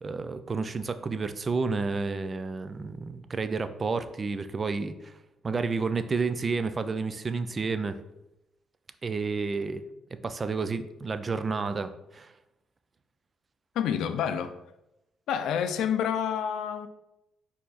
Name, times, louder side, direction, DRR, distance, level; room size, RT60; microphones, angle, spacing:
voice 1, 0.0-5.1 5.4-8.0 9.0-9.8 10.2-12.3, right 4 dB, 35° right, 0.4 m, -30 dB
voice 2, 13.8-14.5 15.3-16.9, left 8 dB, 80° left, 0.4 m, -28 dB
4.7 x 2.8 x 4.0 m
cardioid pair, 90°, 0 cm